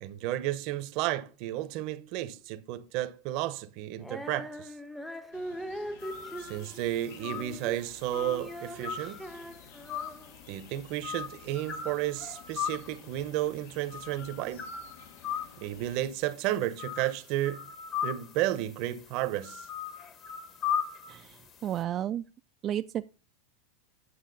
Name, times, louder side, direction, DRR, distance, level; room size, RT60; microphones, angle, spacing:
voice 1, 0.0-4.7 6.4-9.2 10.5-14.6 15.6-17.7 18.0-19.6, right 14 dB, 55° right, 0.8 m, -32 dB
Female singing, 4.0-10.4, equal, ahead, 0.7 m, -41 dB
sound 1, 5.3-16.1, left 6 dB, 75° left, 1.2 m, -54 dB
sound 2, 6.0-21.8, left 8 dB, 40° left, 1.2 m, -38 dB
voice 2, 21.1-22.2 22.6-23.1, right 11 dB, 35° right, 0.3 m, -33 dB
9.6 x 6.3 x 3.9 m
supercardioid pair, 125°, 0 cm